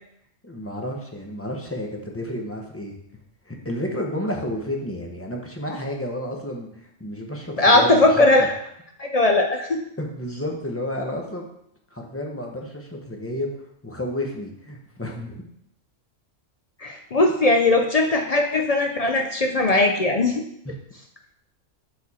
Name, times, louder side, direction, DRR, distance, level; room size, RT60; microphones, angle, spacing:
voice 1, 0.4-3.0 3.5-8.3 10.0-11.5 11.9-13.5 13.8-15.4 20.6-20.8, left 1 dB, 15° left, 1 dB, 0.7 m, -31 dB
voice 2, 7.6-8.5 9.0-9.8 16.8-20.4, left 2 dB, 60° left, 3 dB, 0.4 m, -19 dB
6.1 x 4.9 x 4.1 m, 0.75 s
omnidirectional pair, 1.3 m